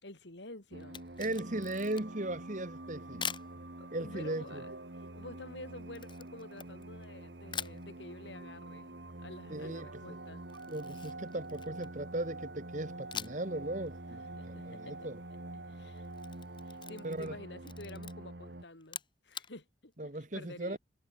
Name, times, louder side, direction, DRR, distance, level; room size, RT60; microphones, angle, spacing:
voice 1, 0.0-1.0 3.8-4.7 5.1-10.4 14.4-15.0 15.5-16.1 16.6-20.8, left 2 dB, 70° left, 3.5 m, -49 dB
sound 1, 0.7-18.6, right 1 dB, 60° right, 1.7 m, -47 dB
Camera, 0.8-2.3 3.2-3.5 5.9-7.1 7.5-7.8 10.5-12.0 13.1-13.5 13.9-14.0 16.0-17.4 17.6-18.1 18.8-19.5, left 7 dB, 25° left, 6.0 m, -43 dB
voice 2, 1.2-3.3 3.9-4.6 9.5-10.2 10.7-15.2 17.0-17.3 20.0-20.8, right 1 dB, 40° right, 1.7 m, -37 dB
sound 2, 1.4-17.4, right 3 dB, 75° right, 5.1 m, -51 dB
head